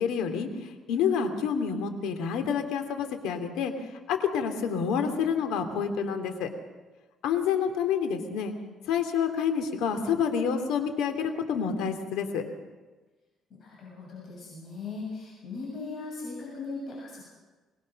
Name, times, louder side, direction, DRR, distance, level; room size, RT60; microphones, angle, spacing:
voice 1, 0.0-3.7 4.1-6.5 7.2-8.5 8.9-12.5, left 7 dB, 85° left, 7 dB, 2.7 m, -28 dB
voice 2, 13.5-17.2, left 3 dB, 45° left, -3 dB, 7.3 m, -38 dB
23.5 x 20.0 x 6.5 m, 1.2 s
cardioid pair, 135°, 0 cm